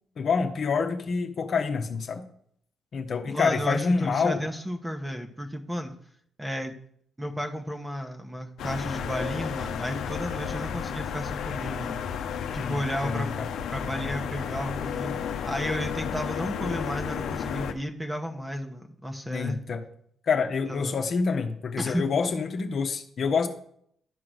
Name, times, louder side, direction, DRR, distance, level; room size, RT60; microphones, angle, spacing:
voice 1, 0.2-2.2 2.9-4.4 12.6-13.5 19.3-19.8 20.3-23.5, left 5 dB, 50° left, 5 dB, 1.0 m, -27 dB
voice 2, 3.3-5.9 6.4-6.7 7.2-12.0 12.5-13.3 13.7-19.6 20.7-20.9 21.8-22.0, equal, 10° right, 5 dB, 1.1 m, -33 dB
sound 1, 8.6-17.7, left 7 dB, 75° left, 0.8 m, -32 dB
11.0 x 3.8 x 6.3 m, 0.66 s
cardioid pair, 90°, 0 cm